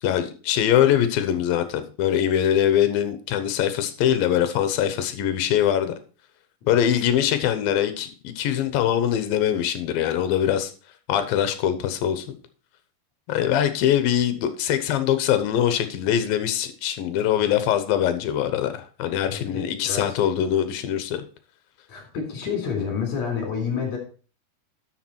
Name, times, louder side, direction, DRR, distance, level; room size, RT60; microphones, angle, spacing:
voice 1, 0.0-5.9 6.7-10.7 11.1-12.4 13.3-21.2, left 10 dB, 75° left, 10 dB, 2.6 m, -23 dB
voice 2, 19.3-20.1 21.9-24.0, left 6 dB, 50° left, 1 dB, 4.5 m, -29 dB
12.0 x 6.2 x 4.5 m, 0.37 s
omnidirectional pair, 4.4 m